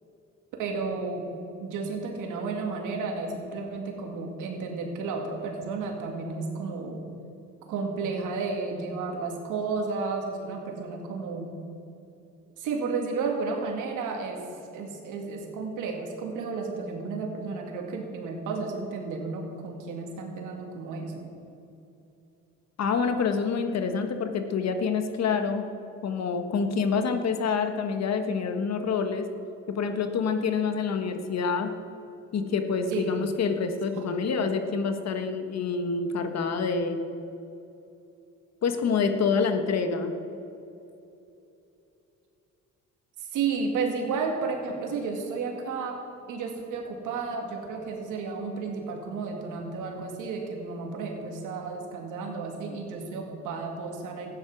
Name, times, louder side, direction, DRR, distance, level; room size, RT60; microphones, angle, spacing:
voice 1, 0.6-1.3 1.6-7.0 7.7-11.6 12.6-14.4 14.7-21.3 32.9-33.2 33.9-34.1 43.2-46.0 46.3-54.3, right 4 dB, 90° right, 2 dB, 2.2 m, -32 dB
voice 2, 22.8-25.6 26.0-29.3 29.7-31.7 32.3-37.0 38.6-40.2, left 5 dB, 60° left, 7 dB, 1.3 m, -27 dB
14.0 x 9.5 x 6.1 m, 2.8 s
cardioid pair, 90°, 30 cm